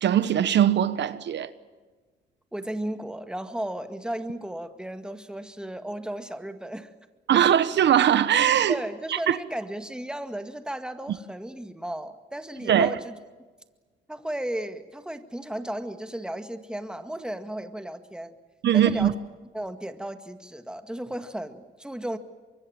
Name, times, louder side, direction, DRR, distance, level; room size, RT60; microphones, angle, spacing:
voice 1, 0.0-1.5 7.3-8.8 9.1-9.4 12.7-12.9 18.6-19.1, right 10 dB, 65° right, 1.1 m, -21 dB
voice 2, 2.5-6.9 8.7-13.2 14.1-18.3 18.7-19.1 19.5-22.2, right 1 dB, 5° right, 1.9 m, -34 dB
24.5 x 23.0 x 7.5 m
cardioid pair, 90°, 20 cm